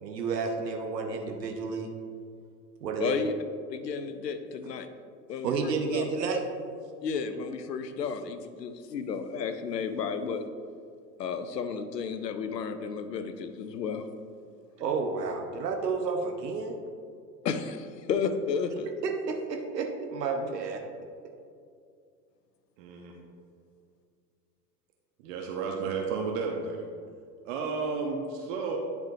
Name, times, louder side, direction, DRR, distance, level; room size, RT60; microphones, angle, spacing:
voice 1, 0.0-1.9 2.8-3.2 5.4-6.4 14.8-16.8 19.0-20.8, right 4 dB, 80° right, 3 dB, 0.8 m, -31 dB
voice 2, 3.0-3.3 3.7-4.9 5.3-6.1 7.0-10.4 11.2-14.1 17.4-18.9, left 6 dB, 80° left, 10 dB, 0.6 m, -32 dB
voice 3, 22.8-23.1 25.2-26.8 27.4-28.8, right 4 dB, 50° right, 1 dB, 0.9 m, -32 dB
10.5 x 4.4 x 2.7 m, 2.3 s
figure-of-eight pair, 80°, 48 cm